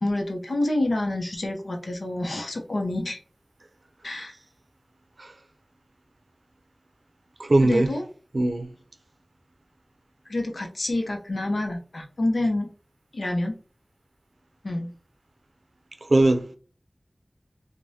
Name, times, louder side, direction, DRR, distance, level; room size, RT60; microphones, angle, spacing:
voice 1, 0.0-3.2 4.0-4.3 7.6-8.0 10.3-12.7 13.1-13.6 14.6-14.9, left 1 dB, 80° left, 0.6 m, -27 dB
voice 2, 7.4-7.9 8.3-8.7 16.1-16.6, right 2 dB, 70° right, 0.5 m, -20 dB
4.7 x 2.2 x 2.7 m
wide cardioid pair, 50°, 0 cm